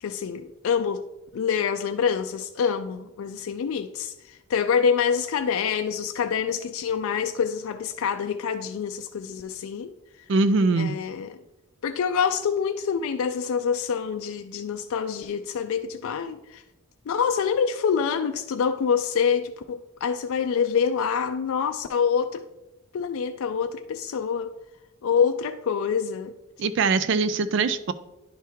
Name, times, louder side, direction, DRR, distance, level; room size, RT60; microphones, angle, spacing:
voice 1, 0.0-1.0 1.3-4.1 4.5-9.9 10.8-11.3 11.8-16.6 17.1-22.4 22.9-24.5 25.0-26.3, left 6 dB, 75° left, 0.3 m, -26 dB
voice 2, 10.3-10.9 26.6-27.9, right 4 dB, 55° right, 0.4 m, -22 dB
10.0 x 3.5 x 4.5 m
head